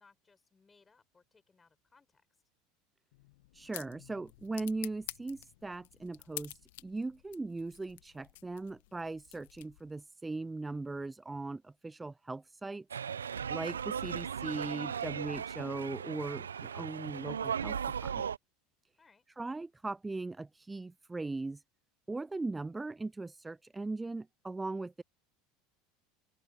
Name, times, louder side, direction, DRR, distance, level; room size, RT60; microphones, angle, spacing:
voice 1, 0.0-2.3 19.0-19.3, left 4 dB, 20° left, 5.8 m, -66 dB
sound 1, 3.1-10.0, left 19 dB, 65° left, 1.6 m, -49 dB
voice 2, 3.5-12.9 13.5-18.3 19.4-21.6 22.1-25.0, right 3 dB, 15° right, 0.3 m, -39 dB
sound 2, 12.9-18.4, right 7 dB, 85° right, 0.6 m, -37 dB
open air
hypercardioid pair, 75°, 0 cm